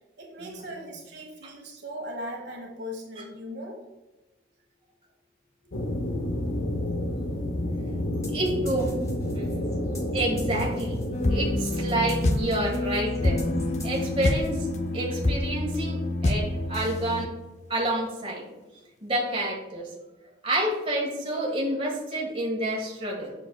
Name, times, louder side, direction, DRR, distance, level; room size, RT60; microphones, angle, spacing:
voice 1, 0.2-3.8, equal, 65° right, 0 dB, 1.3 m, -38 dB
sound 1, 5.7-11.5, left 1 dB, 85° left, 0.8 m, -29 dB
sound 2, 8.2-14.9, left 2 dB, 15° left, 0.9 m, -48 dB
voice 2, 8.2-8.9 9.3-9.5 10.1-11.0 11.3-13.4 13.8-14.7 14.9-17.3 17.7-18.4 19.0-19.9 20.4-23.3, right 1 dB, 30° right, -3 dB, 1.6 m, -29 dB
sound 3, 11.1-17.3, left 1 dB, 35° left, 0.5 m, -27 dB
7.4 x 6.3 x 2.3 m, 1.1 s
head